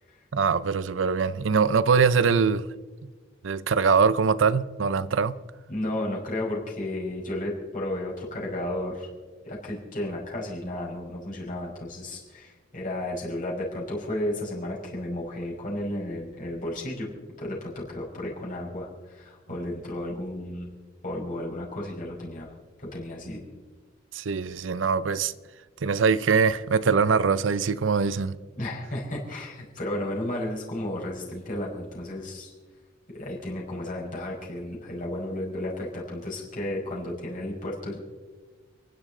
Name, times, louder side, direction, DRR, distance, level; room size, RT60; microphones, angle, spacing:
voice 1, 0.3-2.7 3.0-3.1 3.4-5.4 24.1-25.3 25.8-28.4, right 5 dB, 85° right, 0.6 m, -23 dB
voice 2, 5.7-9.1 9.4-17.1 17.4-20.7 21.0-22.5 22.8-23.4 28.6-32.5 33.1-38.0, left 1 dB, 45° left, 5.1 m, -33 dB
30.0 x 11.0 x 3.8 m
head